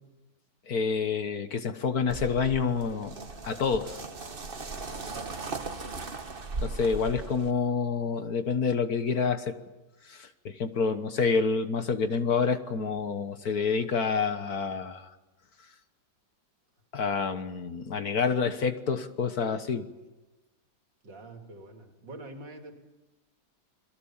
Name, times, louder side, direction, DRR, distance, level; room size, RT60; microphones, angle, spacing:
voice 1, 0.7-3.1 3.4-4.0 6.6-9.5 10.1-15.1 16.9-19.8, left 5 dB, 55° left, 9 dB, 1.7 m, -28 dB
sound 1, 2.1-7.5, right 3 dB, 30° right, 1.4 m, -38 dB
voice 2, 5.1-5.4 10.8-11.1 21.0-22.7, right 2 dB, 65° right, 3 dB, 3.7 m, -46 dB
29.5 x 22.5 x 7.3 m, 1.1 s
omnidirectional pair, 2.1 m